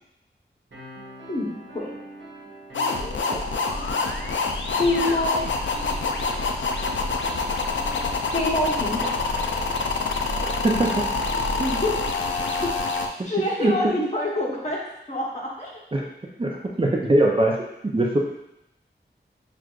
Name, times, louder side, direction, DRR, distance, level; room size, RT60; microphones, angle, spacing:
sound 1, 0.7-8.7, equal, 85° right, 1.1 m, -43 dB
voice 1, 1.3-1.9 4.6-5.4 8.3-9.1 11.7-11.9 13.2-14.8 15.1-15.8, left 1 dB, 35° left, -4 dB, 1.0 m, -26 dB
sound 2, 2.7-13.1, left 3 dB, 80° left, 0.4 m, -26 dB
voice 2, 10.4-11.1 11.6-11.8 13.2-13.3 13.6-13.8 15.9-16.0 16.4-17.5 17.8-18.2, right 1 dB, 30° right, -2 dB, 0.5 m, -22 dB
6.1 x 2.4 x 2.4 m, 0.85 s
wide cardioid pair, 90°, 19 cm